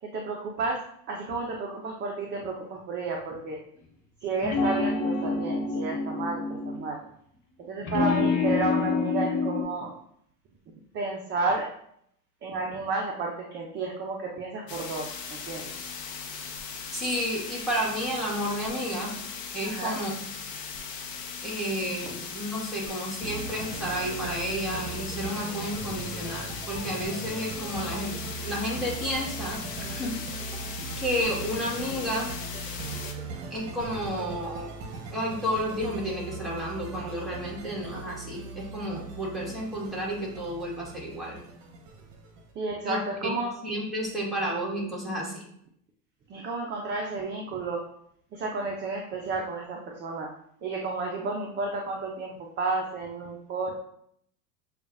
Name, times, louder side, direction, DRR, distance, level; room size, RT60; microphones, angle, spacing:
voice 1, 0.0-3.6 4.2-7.0 7.6-9.9 10.9-11.7 12.4-15.7 19.6-20.0 22.0-22.1 42.6-43.5 46.3-47.8 48.3-50.3 50.6-53.7, right 3 dB, 25° right, 0 dB, 0.5 m, -32 dB
sound 1, 4.4-6.8 7.8-9.6, left 4 dB, 40° left, 1.2 m, -27 dB
sound 2, 14.7-33.1, left 6 dB, 85° left, 0.8 m, -38 dB
voice 2, 16.9-19.1 19.5-20.1 21.4-28.1 28.4-29.6 29.9-30.1 31.0-32.3 33.5-34.7 35.1-41.4 42.8-43.0 43.6-45.5, equal, ahead, -5 dB, 1.6 m, -31 dB
sound 3, 23.2-42.5, right 3 dB, 45° right, 1.0 m, -39 dB
6.6 x 2.4 x 2.5 m, 0.69 s
hypercardioid pair, 95°, 49 cm